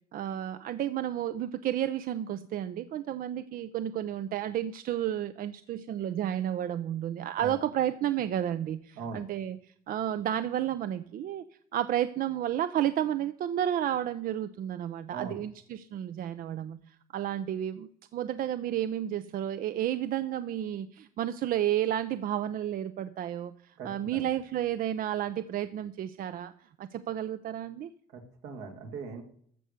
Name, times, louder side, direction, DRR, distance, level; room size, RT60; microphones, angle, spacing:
voice 1, 0.1-11.4 11.7-27.9, right 11 dB, 60° right, 13 dB, 0.6 m, -32 dB
voice 2, 23.8-24.3 28.1-29.2, right 5 dB, 85° right, 4 dB, 2.3 m, -40 dB
14.0 x 6.8 x 6.6 m, 0.63 s
cardioid pair, 110°, 17 cm